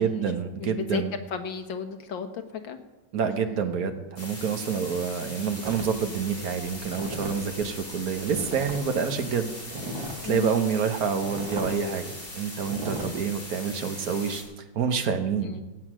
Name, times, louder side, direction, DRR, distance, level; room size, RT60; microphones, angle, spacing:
voice 1, 0.0-1.1 3.1-9.5 10.2-14.4 14.7-15.6, right 6 dB, 55° right, 7 dB, 1.5 m, -27 dB
voice 2, 0.6-1.0 1.3-2.8 10.3-10.6 15.4-15.6, left 6 dB, 80° left, 7 dB, 1.9 m, -33 dB
sound 1, 4.2-14.4, left 1 dB, 30° left, 3.2 m, -40 dB
sound 2, 5.6-8.8 9.1-10.3 10.7-10.8 11.2-11.7 12.1-12.3 12.6-13.1, right 1 dB, 85° right, 2.6 m, -37 dB
17.0 x 8.4 x 6.2 m, 1.1 s
omnidirectional pair, 2.0 m